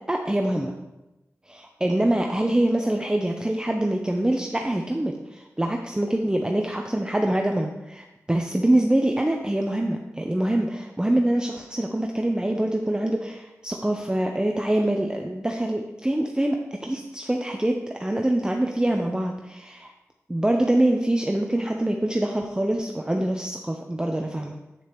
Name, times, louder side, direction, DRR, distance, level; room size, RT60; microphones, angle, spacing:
voice 1, 0.1-0.7 1.5-19.9 20.3-24.6, right 1 dB, 15° right, 2 dB, 0.6 m, -25 dB
8.4 x 7.2 x 3.0 m, 1.0 s
wide cardioid pair, 60°, 6 cm